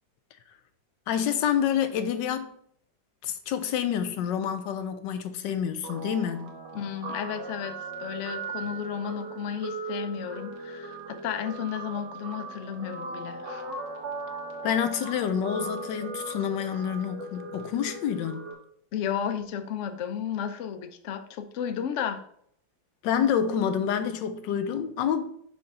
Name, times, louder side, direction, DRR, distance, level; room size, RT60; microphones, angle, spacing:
voice 1, 1.1-2.5 3.2-6.5 14.6-18.4 23.0-25.3, left 8 dB, 85° left, 1.3 m, -28 dB
Guitar, 5.8-18.5, right 3 dB, 80° right, 1.9 m, -38 dB
voice 2, 6.7-13.6 18.9-22.2, left 8 dB, 65° left, 0.7 m, -33 dB
6.6 x 3.4 x 5.4 m
omnidirectional pair, 1.9 m